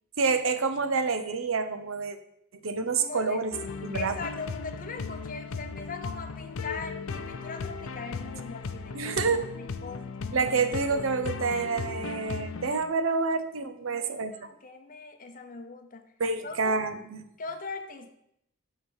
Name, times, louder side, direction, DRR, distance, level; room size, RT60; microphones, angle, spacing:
voice 1, 0.2-2.2 2.6-3.5 3.8-4.2 8.9-9.4 10.3-14.5 16.2-17.2, right 4 dB, 65° right, 9 dB, 0.7 m, -28 dB
voice 2, 3.0-3.4 3.9-10.1 13.9-16.0 16.4-16.8 17.4-18.1, left 4 dB, 40° left, 7 dB, 0.8 m, -40 dB
sound 1, 3.5-12.8, left 4 dB, 70° left, 0.5 m, -37 dB
9.5 x 4.0 x 6.3 m, 0.77 s
head